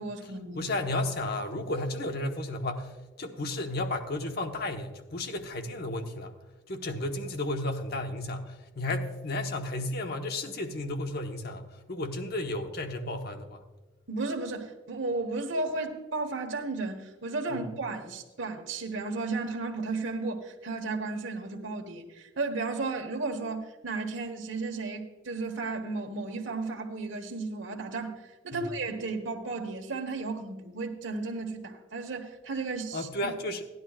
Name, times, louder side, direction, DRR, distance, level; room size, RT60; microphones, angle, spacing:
voice 1, 0.0-0.7 14.1-33.3, right 3 dB, 80° right, 2 dB, 1.3 m, -34 dB
voice 2, 0.5-6.3 6.7-13.6 17.5-17.6 32.9-33.6, left 2 dB, 55° left, 5 dB, 1.2 m, -33 dB
17.5 x 11.0 x 2.4 m, 1.2 s
head